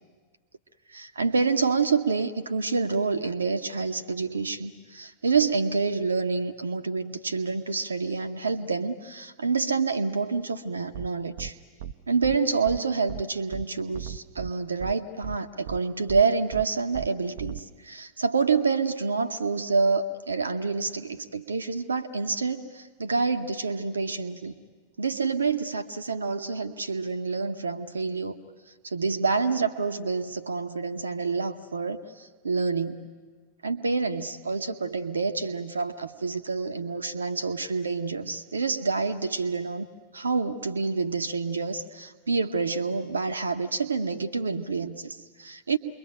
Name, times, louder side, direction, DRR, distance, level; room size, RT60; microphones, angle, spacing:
voice 1, 0.9-11.6 12.1-24.5 25.0-28.4 28.8-33.0 33.6-39.9 40.1-45.8, right 4 dB, 75° right, 8 dB, 1.0 m, -27 dB
sound 1, 10.9-11.1 11.4-11.5 11.8-11.9 12.2-12.4 12.7-12.8 13.1-13.2 13.5-13.6 13.9-14.5 14.8-14.9 15.2-15.4 15.7-15.8 16.1-16.2 16.5-16.6 16.9-17.1 17.4-17.6, right 9 dB, 60° right, 0.7 m, -36 dB
28.0 x 22.5 x 9.0 m, 1.5 s
figure-of-eight pair, 90°, 0 cm